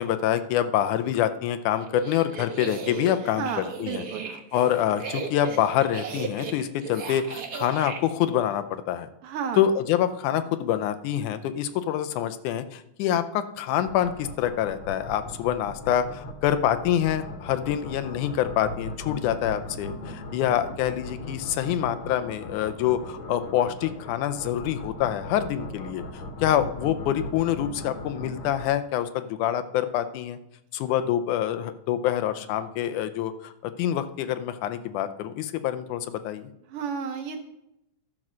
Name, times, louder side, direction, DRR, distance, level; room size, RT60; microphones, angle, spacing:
voice 1, 0.0-4.0 4.5-9.1 9.6-26.0 26.4-30.4 30.7-36.5, left 11 dB, 85° left, 10 dB, 2.1 m, -26 dB
sound 1, 1.8-8.0, right 5 dB, 60° right, 1.0 m, -36 dB
voice 2, 3.4-4.3 9.2-9.6 36.7-37.4, right 6 dB, 85° right, 7 dB, 1.2 m, -32 dB
sound 2, 13.9-28.7, left 1 dB, 55° left, 1.9 m, -39 dB
12.0 x 6.2 x 6.2 m, 0.83 s
omnidirectional pair, 3.5 m